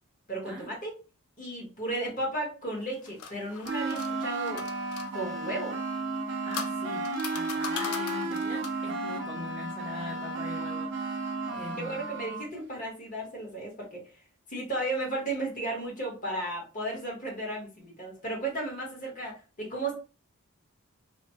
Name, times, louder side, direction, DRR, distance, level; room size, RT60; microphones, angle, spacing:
voice 1, 0.3-1.0 1.4-4.6 5.1-5.8 11.8-14.0 14.5-19.9, right 2 dB, 35° left, -3 dB, 1.1 m, -34 dB
sound 1, 2.8-5.1 6.1-8.9, left 6 dB, 85° left, 0.4 m, -40 dB
sound 2, 3.6-12.5, right 2 dB, 55° right, 0.5 m, -33 dB
voice 2, 6.4-12.1, left 1 dB, 5° right, -5 dB, 0.5 m, -42 dB
3.0 x 2.0 x 2.8 m, 0.33 s
head